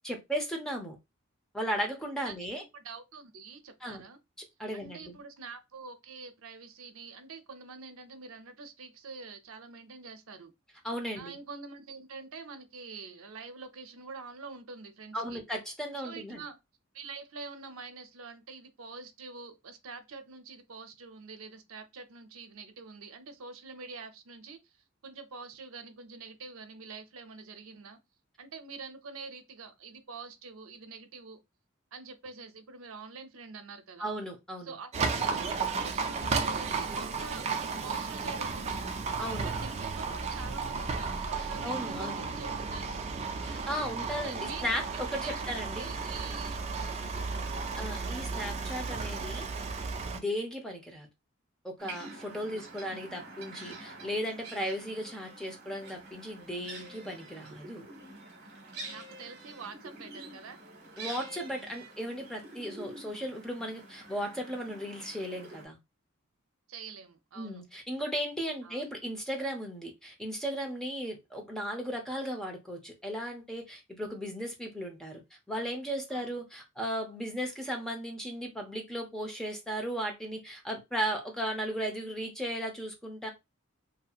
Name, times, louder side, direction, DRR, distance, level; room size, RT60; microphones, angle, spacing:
voice 1, 0.0-1.0 1.5-2.6 3.8-4.0 4.6-5.2 10.8-11.4 15.1-16.4 34.0-34.7 39.2-39.5 41.6-42.2 43.4-45.9 47.8-49.7 50.1-51.1 51.6-57.8 61.0-65.8 67.4-75.2 75.5-83.3, equal, 5° left, 0.7 m, -36 dB
voice 2, 2.7-4.2 4.7-10.5 11.1-15.4 16.0-16.6 16.9-28.0 28.4-31.4 31.9-34.1 34.6-37.4 37.8-43.0 44.1-44.7 45.2-46.6 47.0-47.5 52.6-53.0 58.9-60.6 66.7-67.6 68.6-68.8 76.1-76.3, right 4 dB, 90° right, 0.5 m, -46 dB
Livestock farm animals working animals, 34.9-50.2, right 4 dB, 35° right, 0.4 m, -34 dB
sound 1, 51.8-65.7, right 2 dB, 55° right, 1.0 m, -47 dB
2.7 x 2.7 x 2.4 m
head